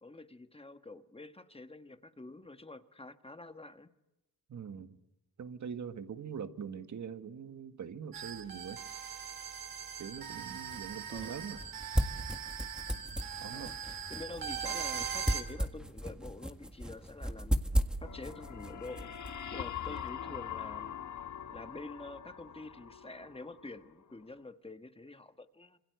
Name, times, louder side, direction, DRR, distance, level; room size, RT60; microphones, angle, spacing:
voice 1, 0.0-3.9 11.1-11.4 13.5-17.6 18.0-19.1 19.5-20.9 21.5-25.8, left 2 dB, 15° left, 9 dB, 1.4 m, -47 dB
voice 2, 4.5-5.0 5.4-8.8 10.0-11.6 11.9-12.1 13.4-13.7, right 7 dB, 60° right, 9 dB, 1.7 m, -43 dB
sound 1, 8.1-15.4, right 8 dB, 85° right, 3.0 m, -40 dB
sound 2, 10.2-20.1, equal, ahead, 1.7 m, -37 dB
sound 3, 18.0-23.9, left 9 dB, 60° left, 1.4 m, -43 dB
27.0 x 27.0 x 8.1 m, 0.93 s
wide cardioid pair, 110°, 33 cm